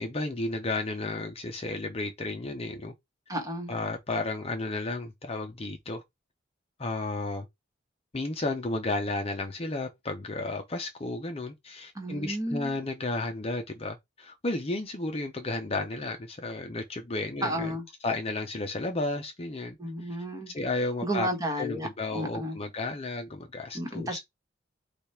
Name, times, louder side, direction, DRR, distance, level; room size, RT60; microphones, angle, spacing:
voice 1, 0.0-2.9 3.7-6.0 6.8-7.5 8.1-20.1 20.5-21.3 21.5-24.2, left 2 dB, 30° left, 0.6 m, -33 dB
voice 2, 3.3-3.7 12.0-12.7 17.4-17.8 19.8-20.5 21.0-21.9 22.1-22.6 23.7-24.2, equal, 20° right, 1.3 m, -32 dB
5.1 x 2.4 x 4.3 m
head